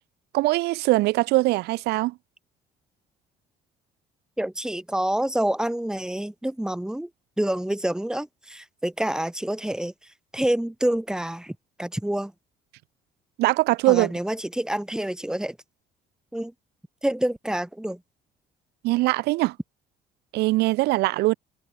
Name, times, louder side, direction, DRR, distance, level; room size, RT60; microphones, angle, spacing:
voice 1, 0.3-2.1 13.4-14.1 18.8-19.5 20.3-21.3, right 20 dB, 80° right, 0.4 m, -21 dB
voice 2, 4.4-7.1 7.4-12.3 13.9-15.6 16.3-16.5 17.0-18.0, right 1 dB, 5° right, 3.0 m, -27 dB
cardioid pair, 110°, 17 cm